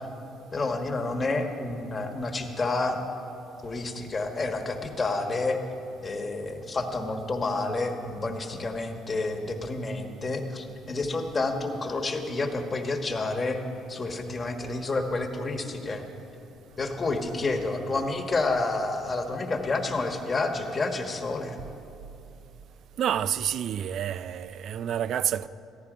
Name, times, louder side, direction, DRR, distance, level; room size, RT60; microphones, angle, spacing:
voice 1, 0.5-3.0 3.6-5.6 6.0-13.6 13.9-16.0 16.8-21.6, left 3 dB, 30° left, 1.4 m, -29 dB
voice 2, 23.0-25.5, right 9 dB, 60° right, 0.4 m, -28 dB
14.0 x 12.0 x 5.0 m
cardioid pair, 90°, 0 cm